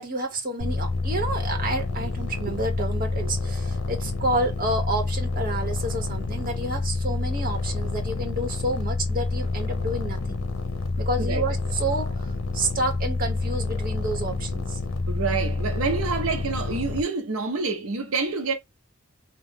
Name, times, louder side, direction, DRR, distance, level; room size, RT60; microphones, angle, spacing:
voice 1, 0.0-10.4 11.0-12.3 12.5-14.8, right 2 dB, 40° right, 1.1 m, -29 dB
sound 1, 0.6-17.0, left 3 dB, 70° left, 0.7 m, -28 dB
voice 2, 15.1-18.5, right 4 dB, 85° right, 0.7 m, -27 dB
3.6 x 2.3 x 3.6 m
head